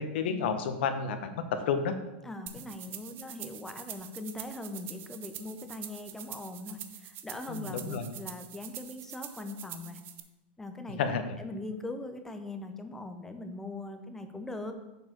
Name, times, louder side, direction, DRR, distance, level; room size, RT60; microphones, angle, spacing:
voice 1, 0.0-1.9 7.5-8.1 11.0-11.3, left 6 dB, 70° left, 8 dB, 1.0 m, -31 dB
voice 2, 2.2-10.0 10.6-14.7, left 2 dB, 5° left, 7 dB, 0.7 m, -41 dB
sound 1, 2.5-10.2, right 11 dB, 35° right, 0.7 m, -45 dB
6.8 x 4.6 x 6.6 m, 1.1 s
supercardioid pair, 145°, 6 cm